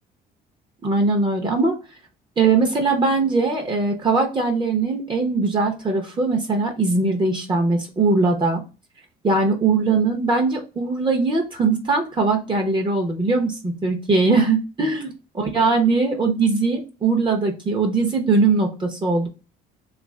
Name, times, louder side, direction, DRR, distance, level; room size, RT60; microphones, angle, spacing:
voice 1, 0.8-1.8 2.4-8.6 9.2-19.3, right 3 dB, 30° right, 3 dB, 0.8 m, -20 dB
3.1 x 2.5 x 3.2 m, 0.31 s
cardioid pair, 110°, 17 cm